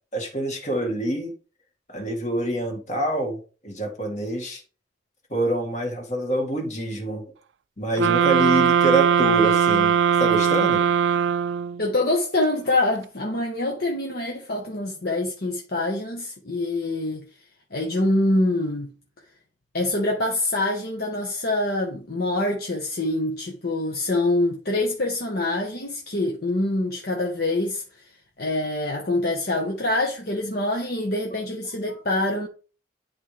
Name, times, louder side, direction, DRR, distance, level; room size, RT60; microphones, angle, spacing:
voice 1, 0.1-1.3 1.9-4.6 5.3-7.3 7.8-10.9 31.9-32.0, right 1 dB, 40° left, 2.2 m, -26 dB
sound 1, 8.0-11.9, right 7 dB, 90° right, 0.4 m, -20 dB
voice 2, 11.8-17.3 17.7-18.9 19.7-28.0 28.4-32.5, left 2 dB, 60° left, 1.2 m, -25 dB
11.0 x 4.5 x 3.4 m
head